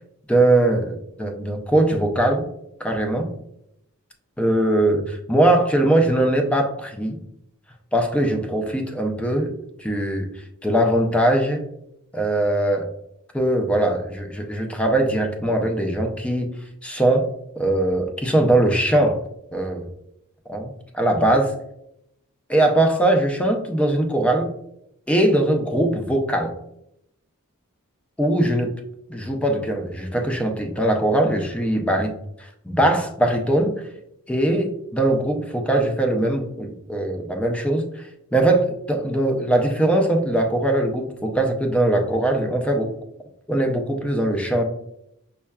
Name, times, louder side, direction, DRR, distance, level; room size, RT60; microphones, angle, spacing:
voice 1, 0.3-2.4 2.8-3.3 4.4-7.2 7.9-9.5 9.8-10.3 10.6-11.6 12.1-12.9 13.3-16.5 16.8-17.3 17.6-19.2 19.5-19.9 20.5-21.5 22.5-24.5 25.1-26.5 28.2-28.7 29.1-32.1 32.4-33.9 34.3-42.9 43.5-44.6, right 1 dB, 5° left, 3 dB, 0.4 m, -21 dB
5.4 x 2.2 x 2.3 m, 0.78 s
head